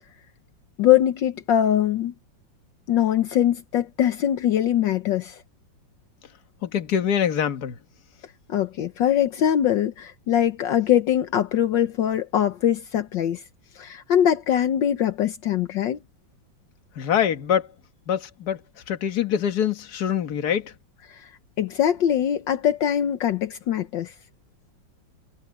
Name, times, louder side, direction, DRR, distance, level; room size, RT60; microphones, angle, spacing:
voice 1, 0.8-2.1 2.9-5.4 8.5-13.4 13.7-16.0 21.1-21.3 21.6-24.1, left 10 dB, 75° left, 1.6 m, -22 dB
voice 2, 6.6-7.8 17.0-17.7 18.1-18.6 18.9-20.7, left 9 dB, 55° left, 1.8 m, -24 dB
omnidirectional pair, 2.1 m